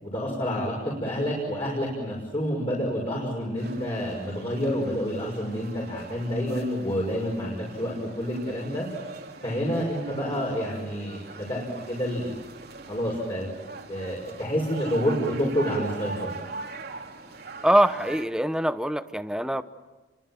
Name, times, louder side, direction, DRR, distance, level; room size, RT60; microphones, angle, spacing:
voice 1, 0.0-8.9 9.4-12.3 12.9-13.5 13.9-16.3, equal, 30° left, -3 dB, 6.4 m, -28 dB
sound 1, 3.6-18.2, right 3 dB, 60° right, 2.9 m, -42 dB
voice 2, 17.6-19.6, right 1 dB, 5° right, 12 dB, 0.9 m, -23 dB
29.5 x 24.5 x 7.7 m, 1.2 s
head